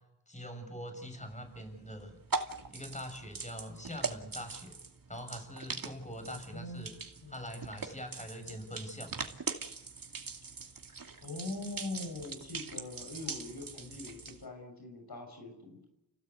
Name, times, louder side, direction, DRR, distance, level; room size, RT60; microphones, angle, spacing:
voice 1, 0.3-2.2 2.7-4.8 5.1-6.9 7.3-9.1, equal, 20° left, 6 dB, 7.0 m, -43 dB
sound 1, 1.2-14.4, right 4 dB, 60° right, 2.5 m, -42 dB
voice 2, 6.5-6.9 7.2-7.3 11.2-15.9, left 2 dB, 75° left, 4 dB, 6.1 m, -42 dB
29.5 x 17.0 x 8.2 m, 0.88 s
cardioid pair, 50°, 38 cm